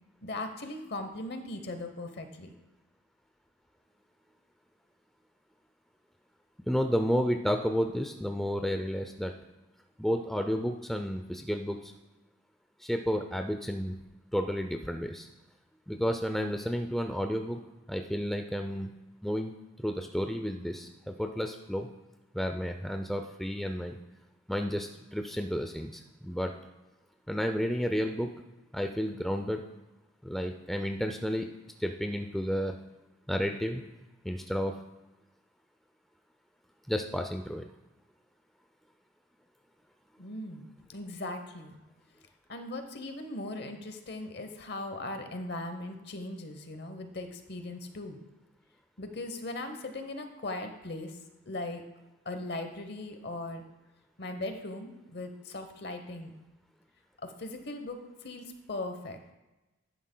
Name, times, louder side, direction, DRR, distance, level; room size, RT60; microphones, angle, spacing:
voice 1, 0.2-2.5 40.2-41.8 42.5-48.2 49.0-51.2 51.5-51.8 52.2-53.6 54.2-56.3 57.2-59.2, left 2 dB, 55° left, 7 dB, 0.9 m, -39 dB
voice 2, 6.7-9.3 10.0-11.9 12.8-14.0 14.3-15.3 15.9-17.6 17.9-18.9 19.2-21.9 22.3-24.0 24.5-26.5 27.3-28.3 28.7-29.6 30.2-31.5 31.8-32.7 33.3-33.8 34.2-34.7 36.9-37.6, equal, ahead, 4 dB, 0.3 m, -31 dB
11.0 x 10.0 x 2.2 m, 1.1 s
head